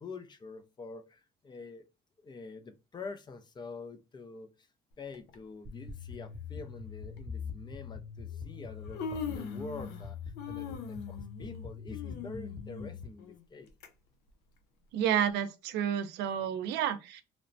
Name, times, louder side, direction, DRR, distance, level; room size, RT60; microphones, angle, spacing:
voice 1, 0.0-1.8 2.2-4.7 5.0-10.2 10.5-13.7, left 4 dB, 25° left, 0.4 m, -46 dB
Human voice, 5.1-5.4 6.4-6.5 7.1-7.3 8.3-8.4 8.7-10.1 10.4-13.9 14.3-14.4 15.2-15.3, left 5 dB, 90° left, 0.5 m, -41 dB
sound 1, 5.6-13.0, left 6 dB, 35° right, 0.5 m, -43 dB
voice 2, 14.9-17.2, right 9 dB, 80° right, 0.4 m, -30 dB
3.0 x 2.1 x 2.5 m
cardioid pair, 110°, 17 cm